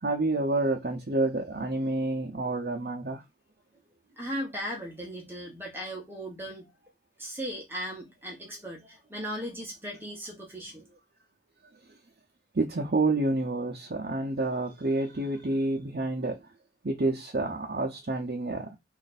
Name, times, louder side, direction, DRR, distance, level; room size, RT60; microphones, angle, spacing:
voice 1, 0.0-3.2 12.5-16.4 16.8-18.7, right 2 dB, 55° right, 0.6 m, -28 dB
voice 2, 4.2-6.7 7.2-11.0, equal, 10° right, 0.9 m, -37 dB
3.2 x 2.5 x 4.1 m
head